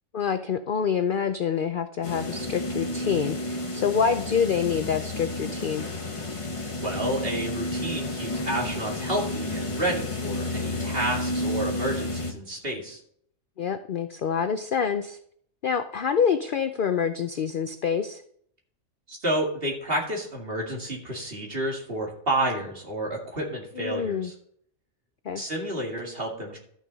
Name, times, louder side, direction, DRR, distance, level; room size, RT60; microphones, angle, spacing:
voice 1, 0.1-5.9 13.6-15.2 15.6-18.2 23.8-24.3 25.3-25.4, left 7 dB, 60° left, 9 dB, 0.5 m, -26 dB
sound 1, 2.0-12.3, left 1 dB, 25° left, 1.1 m, -31 dB
voice 2, 6.8-13.0 19.1-24.3 25.3-26.6, right 1 dB, 45° right, -1 dB, 2.5 m, -30 dB
13.0 x 6.2 x 4.0 m, 0.65 s
omnidirectional pair, 1.4 m